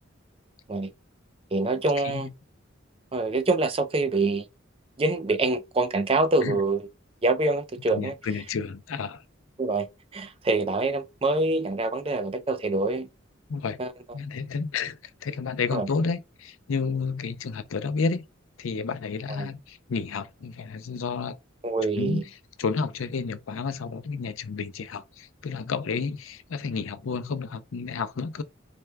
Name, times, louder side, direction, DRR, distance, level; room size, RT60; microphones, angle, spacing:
voice 1, 1.5-2.3 3.1-4.4 5.0-6.9 7.2-8.1 9.6-9.9 10.1-13.1 13.8-13.9 15.7-15.9 19.4-19.5 21.6-22.2, right 2 dB, 30° right, 0.5 m, -25 dB
voice 2, 7.9-9.2 13.5-13.8 14.1-18.2 18.6-21.4 22.0-22.2 22.6-28.4, left 5 dB, 85° left, 0.5 m, -31 dB
4.4 x 2.2 x 3.3 m
head